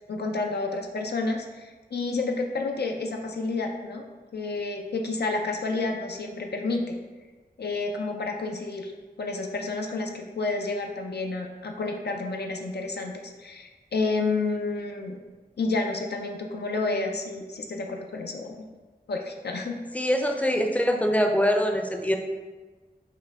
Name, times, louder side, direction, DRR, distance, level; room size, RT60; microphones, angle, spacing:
voice 1, 0.1-4.0 4.3-7.0 7.6-8.9 9.2-15.1 15.6-18.7 19.1-19.8, left 3 dB, 85° left, 2 dB, 0.4 m, -30 dB
voice 2, 19.9-22.2, equal, 10° left, 4 dB, 0.5 m, -23 dB
5.6 x 2.2 x 3.5 m, 1.3 s
wide cardioid pair, 45°, 17 cm